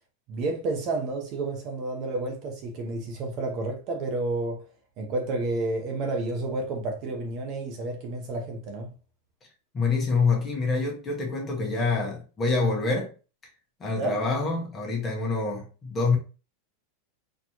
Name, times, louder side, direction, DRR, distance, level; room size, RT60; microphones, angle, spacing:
voice 1, 0.3-4.6 5.0-8.9 14.0-14.2, right 2 dB, 35° right, 0.9 m, -30 dB
voice 2, 9.7-13.1 13.8-16.2, left 4 dB, 15° left, 1.4 m, -26 dB
4.3 x 3.1 x 2.9 m
supercardioid pair, 160°, 0 cm